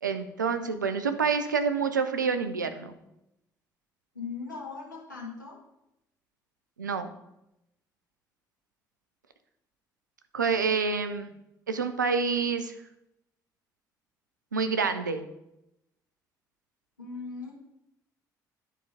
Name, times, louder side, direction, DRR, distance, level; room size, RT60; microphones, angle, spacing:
voice 1, 0.0-2.9 6.8-7.1 10.3-11.3 11.7-12.7 14.5-15.3, right 5 dB, 80° right, 9 dB, 0.5 m, -27 dB
voice 2, 4.1-5.6 17.0-17.5, left 4 dB, 85° left, -4 dB, 1.6 m, -39 dB
10.0 x 4.1 x 4.9 m, 0.86 s
figure-of-eight pair, 45°, 10 cm